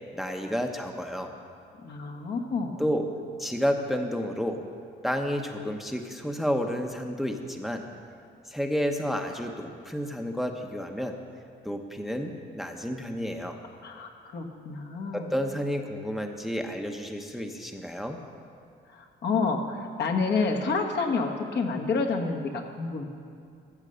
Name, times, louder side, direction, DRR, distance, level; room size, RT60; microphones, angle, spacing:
voice 1, 0.1-1.3 2.8-3.1 3.4-4.6 5.0-7.8 8.5-11.2 11.6-13.6 15.1-18.2, equal, ahead, 4 dB, 0.9 m, -30 dB
voice 2, 1.8-2.8 13.8-15.3 18.9-23.1, left 4 dB, 60° left, 2 dB, 1.5 m, -29 dB
14.5 x 7.5 x 6.8 m, 2.3 s
cardioid pair, 90°, 20 cm